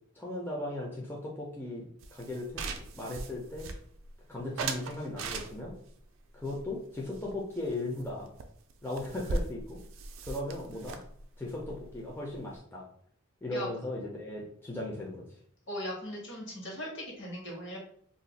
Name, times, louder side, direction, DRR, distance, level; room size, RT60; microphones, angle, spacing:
voice 1, 0.1-2.6 2.9-3.7 4.3-5.7 6.3-8.3 8.8-9.8 10.3-11.0 11.4-12.8 13.4-15.3, left 1 dB, 10° left, -4 dB, 0.5 m, -37 dB
sound 1, 2.0-4.1 4.6-5.9 6.4-7.7 8.0-8.1 8.4-8.5 8.7-12.6, right 3 dB, 65° right, 0.4 m, -39 dB
voice 2, 15.7-17.8, left 1 dB, 55° left, -2 dB, 1.1 m, -38 dB
2.5 x 2.3 x 3.9 m, 0.63 s
head